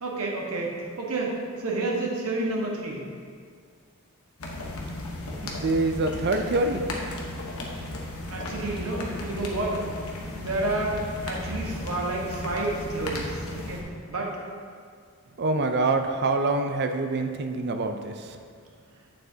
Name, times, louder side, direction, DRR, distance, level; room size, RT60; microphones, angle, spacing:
voice 1, 0.0-3.0 8.3-9.8 10.3-14.3, right 2 dB, 70° right, -2 dB, 1.3 m, -30 dB
sound 1, 4.4-13.8, left 1 dB, 75° left, 1.1 m, -35 dB
voice 2, 5.4-6.8 15.4-18.1, right 2 dB, 50° right, 6 dB, 0.5 m, -25 dB
8.9 x 7.4 x 2.8 m, 2.1 s
head